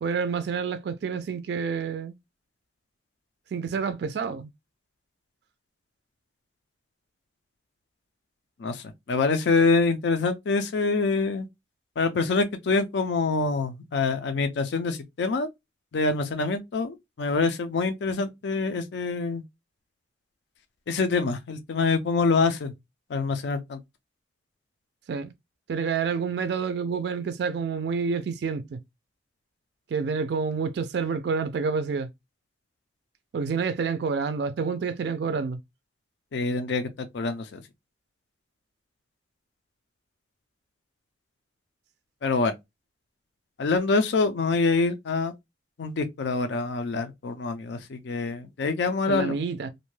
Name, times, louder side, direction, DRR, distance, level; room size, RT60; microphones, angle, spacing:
voice 1, 0.0-2.1 3.5-4.5 25.1-25.3 25.7-28.8 29.9-32.1 33.3-35.6 49.1-49.7, right 5 dB, 60° right, 0.3 m, -28 dB
voice 2, 8.6-11.5 12.0-15.5 15.9-19.4 20.9-22.7 23.1-23.8 36.3-36.9 37.1-37.6 42.2-42.5 43.6-45.3 45.8-49.4, left 4 dB, 70° left, 0.4 m, -25 dB
2.6 x 2.2 x 3.1 m
head